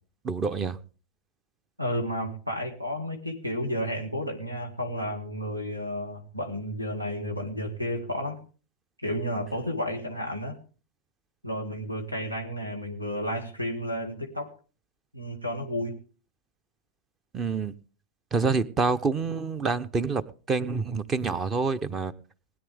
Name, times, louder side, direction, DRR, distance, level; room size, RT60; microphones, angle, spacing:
voice 1, 0.2-0.8 17.3-17.7 18.3-20.2 20.5-22.1, right 4 dB, 25° right, 0.8 m, -27 dB
voice 2, 1.8-8.4 9.0-10.6 11.4-14.5 15.1-15.9, equal, 85° right, 2.3 m, -32 dB
20.5 x 9.8 x 3.6 m
figure-of-eight pair, 90°, 0 cm